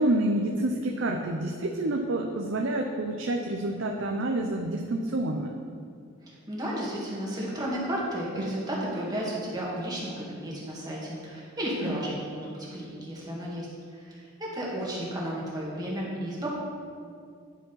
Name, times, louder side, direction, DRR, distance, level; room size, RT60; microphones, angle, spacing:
voice 1, 0.0-5.5 8.4-8.6 11.8-12.1, right 1 dB, 65° right, 2 dB, 0.6 m, -28 dB
voice 2, 6.5-13.7 13.9-16.5, equal, 20° right, -5 dB, 2.0 m, -33 dB
10.0 x 5.0 x 5.6 m, 2.3 s
head